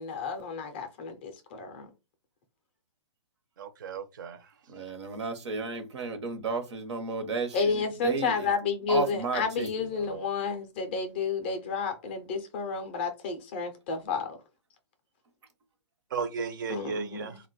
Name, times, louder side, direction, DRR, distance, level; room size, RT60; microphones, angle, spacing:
voice 1, 0.0-1.9 7.5-14.4 16.7-17.4, left 5 dB, 25° left, 0.4 m, -31 dB
voice 2, 3.6-4.4 16.1-17.4, right 5 dB, 45° right, 0.5 m, -34 dB
voice 3, 4.7-7.7 8.0-8.3 8.9-9.7 10.1-10.2, right 4 dB, 70° right, 0.8 m, -32 dB
2.5 x 2.2 x 3.9 m
hypercardioid pair, 165°, 15 cm